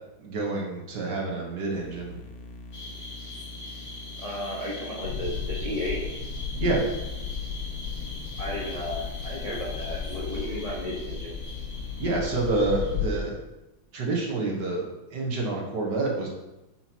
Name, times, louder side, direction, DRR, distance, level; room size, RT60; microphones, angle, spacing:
voice 1, 0.2-2.2 6.6-6.9 12.0-13.4 13.9-16.3, right 2 dB, 55° right, -2 dB, 1.6 m, -28 dB
sound 1, 1.7-13.3, left 2 dB, 65° left, 0.9 m, -44 dB
sound 2, 2.7-13.2, left 2 dB, 45° left, 2.0 m, -43 dB
voice 2, 4.2-6.0 8.4-11.4, left 1 dB, 30° left, -5 dB, 0.7 m, -33 dB
sound 3, 5.0-13.1, left 7 dB, 90° left, 0.9 m, -35 dB
7.6 x 5.6 x 2.9 m, 0.97 s
omnidirectional pair, 2.4 m